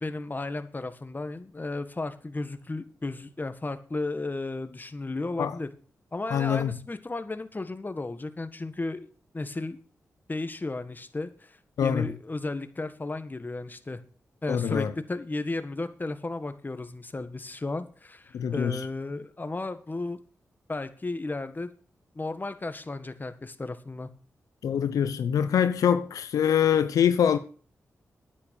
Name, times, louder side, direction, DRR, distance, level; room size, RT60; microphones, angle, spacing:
voice 1, 0.0-5.7 6.1-9.1 9.3-9.8 10.3-14.0 14.4-20.2 20.7-21.7 22.2-24.1, left 2 dB, 30° left, 1.6 m, -34 dB
voice 2, 6.3-6.7 11.8-12.1 14.5-14.9 18.3-18.8 24.6-27.4, left 8 dB, 85° left, 0.7 m, -24 dB
9.6 x 9.1 x 7.0 m
cardioid pair, 45°, 6 cm